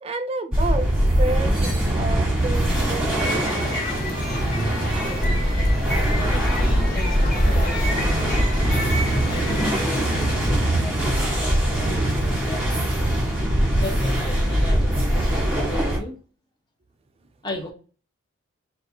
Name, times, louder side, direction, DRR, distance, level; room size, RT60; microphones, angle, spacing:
voice 1, 0.0-4.0, right 2 dB, 30° right, 0.3 m, -31 dB
sound 1, 0.5-16.0, right 1 dB, 5° right, 1.3 m, -22 dB
sound 2, 2.9-10.5, left 1 dB, 45° left, 1.5 m, -30 dB
voice 2, 6.1-8.7 9.3-12.8 13.7-16.2 17.4-17.7, left 1 dB, 20° left, 0.8 m, -37 dB
4.1 x 2.3 x 4.2 m
head